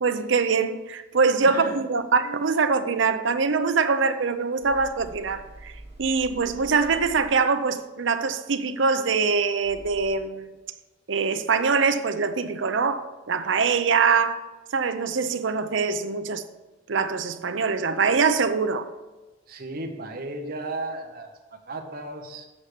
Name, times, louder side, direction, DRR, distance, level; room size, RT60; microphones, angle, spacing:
voice 1, 0.0-10.5 11.1-14.4 14.7-16.4 16.9-18.9, right 5 dB, 70° right, 0.6 m, -23 dB
sound 1, 4.6-7.7 9.6-10.5, right 1 dB, 15° right, 2.1 m, -46 dB
voice 2, 19.5-22.5, right 2 dB, 50° right, 1.1 m, -35 dB
7.4 x 6.6 x 4.9 m
head